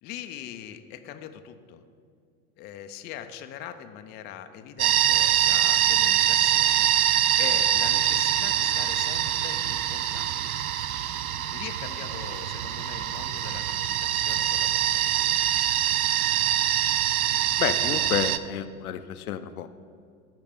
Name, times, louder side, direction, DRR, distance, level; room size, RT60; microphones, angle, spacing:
voice 1, 0.0-1.8 2.6-6.9 7.4-10.5 11.5-15.4, left 10 dB, 25° left, 8 dB, 0.4 m, -41 dB
sound 1, 4.8-18.4, right 11 dB, 75° right, 0.5 m, -24 dB
voice 2, 17.6-19.7, left 10 dB, 75° left, 11 dB, 0.6 m, -30 dB
14.5 x 4.9 x 3.5 m, 2.4 s
figure-of-eight pair, 85°, 44 cm